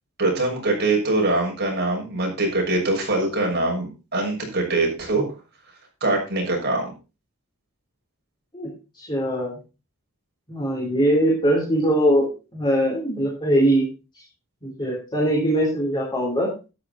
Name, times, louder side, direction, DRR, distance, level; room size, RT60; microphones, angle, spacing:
voice 1, 0.2-5.3 6.0-6.9, right 2 dB, 50° right, 0 dB, 6.4 m, -23 dB
voice 2, 8.5-9.6 10.5-13.9 14.1-14.2 14.6-16.7, right 1 dB, 20° left, -3 dB, 3.8 m, -22 dB
12.5 x 10.0 x 4.3 m, 0.31 s
head